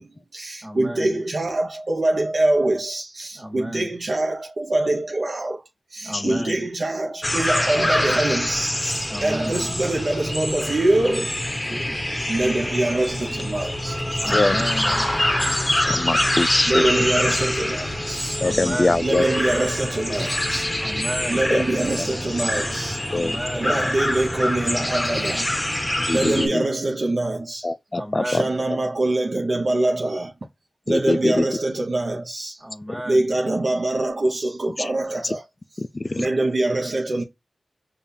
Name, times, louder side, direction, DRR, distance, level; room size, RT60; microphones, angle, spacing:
voice 1, 0.0-5.6 5.9-11.3 12.3-14.2 16.7-18.4 19.0-20.7 21.3-23.0 23.5-25.6 26.1-27.7 28.2-30.3 30.9-32.6 33.0-35.4 36.2-37.2, right 2 dB, 65° right, 0.7 m, -24 dB
voice 2, 0.6-1.2 3.3-4.0 6.0-6.7 9.1-9.7 11.6-12.5 14.2-15.1 18.4-19.2 20.8-21.6 23.1-23.9 27.9-28.6 32.6-33.4, equal, 30° right, 1.6 m, -33 dB
sound 1, 7.2-26.5, left 1 dB, 15° left, 0.8 m, -25 dB
voice 3, 15.8-16.8 18.4-19.2 21.5-21.6 23.1-23.4 26.1-26.7 27.6-28.4 30.9-31.5 34.8-34.9 35.8-36.3, left 2 dB, 40° left, 0.3 m, -23 dB
5.2 x 2.3 x 2.7 m
cardioid pair, 45°, 0 cm